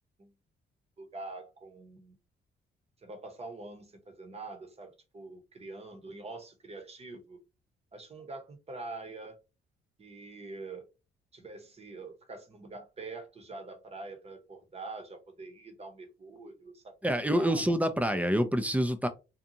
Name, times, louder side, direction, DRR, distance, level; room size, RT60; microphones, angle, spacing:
voice 1, 1.0-2.1 3.0-7.4 7.9-9.3 10.0-10.9 11.3-17.8, right 3 dB, 30° right, 0.9 m, -45 dB
voice 2, 17.0-19.1, equal, 5° right, 0.4 m, -27 dB
2.6 x 2.3 x 2.7 m
cardioid pair, 90°, 20 cm